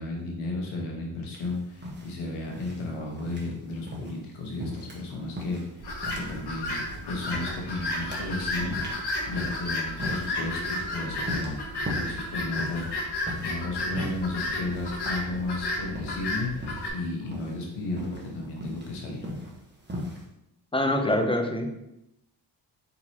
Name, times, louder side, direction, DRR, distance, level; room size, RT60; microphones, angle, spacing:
voice 1, 0.0-5.6 6.1-11.6 12.0-19.3, left 2 dB, 75° left, 0 dB, 1.3 m, -34 dB
sound 1, 1.3-20.2, left 1 dB, 20° right, 1.3 m, -40 dB
sound 2, 5.8-16.9, left 2 dB, 50° left, 1.3 m, -32 dB
voice 2, 20.7-21.8, left 1 dB, 10° left, 3 dB, 0.7 m, -25 dB
4.1 x 4.0 x 2.9 m, 0.86 s
supercardioid pair, 50°, 49 cm